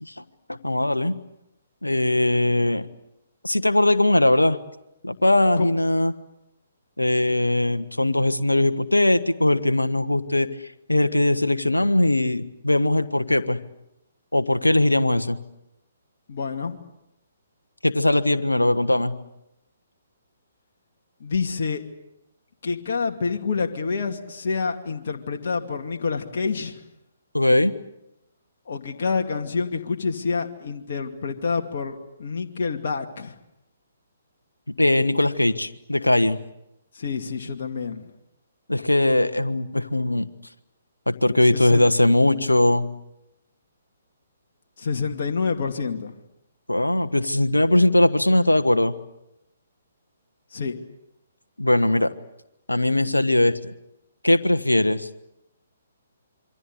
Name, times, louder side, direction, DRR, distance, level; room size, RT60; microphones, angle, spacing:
voice 1, 0.6-1.2 1.8-2.9 3.4-4.6 5.0-6.1 7.0-10.5 10.9-13.6 14.3-15.4 17.8-19.1 27.3-27.8 34.8-36.4 38.7-40.3 41.1-42.9 46.7-48.9 51.6-52.1 52.7-53.7 54.2-55.1, left 1 dB, 90° left, 10 dB, 1.3 m, -20 dB
voice 2, 16.3-16.8 21.2-21.8 22.6-26.8 28.7-33.4 36.9-38.1 41.5-41.9 44.8-46.1 50.5-50.8, left 5 dB, 55° left, 3 dB, 2.5 m, -27 dB
27.0 x 24.5 x 8.3 m, 0.86 s
figure-of-eight pair, 130°, 0 cm